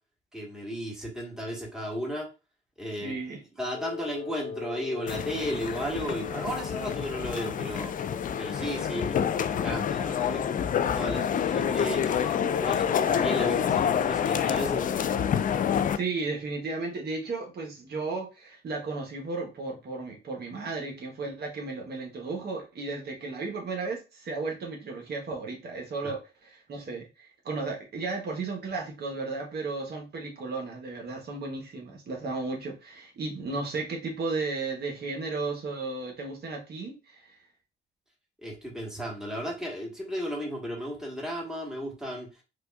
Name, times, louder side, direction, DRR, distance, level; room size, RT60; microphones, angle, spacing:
voice 1, 0.3-2.3 2.8-7.9 8.4-10.5 10.9-12.3 12.6-14.9 26.0-26.1 38.4-42.4, equal, 5° right, -1 dB, 1.4 m, -34 dB
voice 2, 3.0-3.4 15.9-26.2 26.4-37.4, right 3 dB, 55° right, 0 dB, 1.1 m, -34 dB
Wind instrument woodwind instrument, 3.7-11.0, left 5 dB, 70° left, 0.9 m, -42 dB
sound 1, 5.1-16.0, left 8 dB, 45° left, 0.4 m, -27 dB
5.0 x 2.4 x 2.4 m, 0.30 s
cardioid pair, 90°, 20 cm